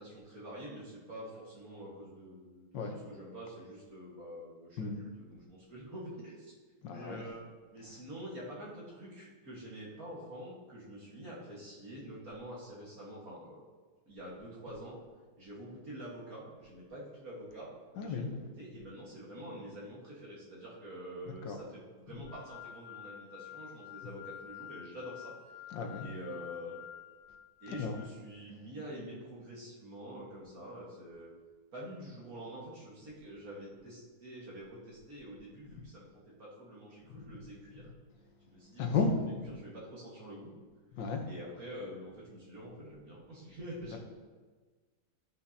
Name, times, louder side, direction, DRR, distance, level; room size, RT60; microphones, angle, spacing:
voice 1, 0.0-6.5 6.9-7.5 7.7-13.6 14.1-15.0 15.4-17.7 18.0-25.3 26.0-26.8 27.6-31.3 31.7-37.9 38.5-39.0 39.5-40.5 41.3-44.0, equal, 50° right, -6 dB, 2.0 m, -46 dB
voice 2, 6.8-7.2 18.0-18.3 21.4-21.6 25.7-26.1 27.8-28.0 37.1-37.2 38.8-39.5 40.9-41.2 43.9-44.0, left 4 dB, 75° left, 4 dB, 1.6 m, -33 dB
sound 1, 22.3-28.1, left 10 dB, 55° left, 2.0 m, -49 dB
14.0 x 5.4 x 2.8 m, 1.4 s
omnidirectional pair, 2.0 m